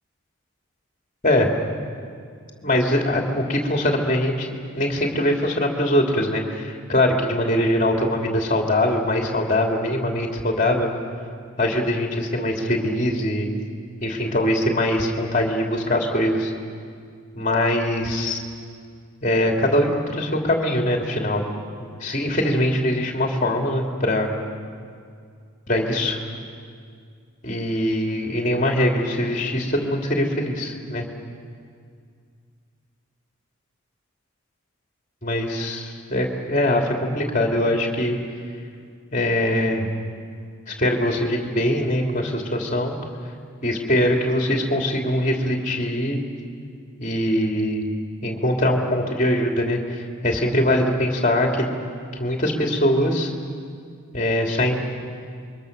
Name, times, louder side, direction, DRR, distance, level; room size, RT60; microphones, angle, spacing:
voice 1, 2.6-4.5 4.7-10.9 11.6-13.5 14.0-16.5 17.3-18.4 19.2-21.4 21.8-24.3 25.7-26.2 27.4-31.1 35.2-38.2 39.1-39.9 40.7-43.0 43.6-46.2 47.0-47.9 48.2-51.6 52.1-53.3 54.1-54.8, left 1 dB, 35° left, 1 dB, 2.9 m, -22 dB
27.0 x 23.0 x 6.7 m, 2.2 s
head